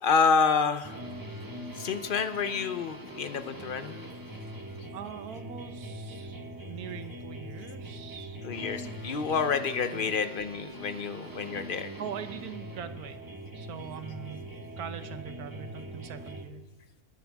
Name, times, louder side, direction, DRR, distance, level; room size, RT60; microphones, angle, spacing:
voice 1, 0.0-0.9 1.8-4.0 8.4-11.9, left 5 dB, 50° left, 10 dB, 0.7 m, -28 dB
sound 1, 0.8-16.4, equal, 15° right, 1.1 m, -42 dB
voice 2, 4.9-8.4 9.9-10.1 12.0-13.2 13.5-14.5 14.8-16.6, right 9 dB, 90° right, 10 dB, 1.3 m, -42 dB
21.0 x 10.0 x 3.5 m, 1.2 s
omnidirectional pair, 1.6 m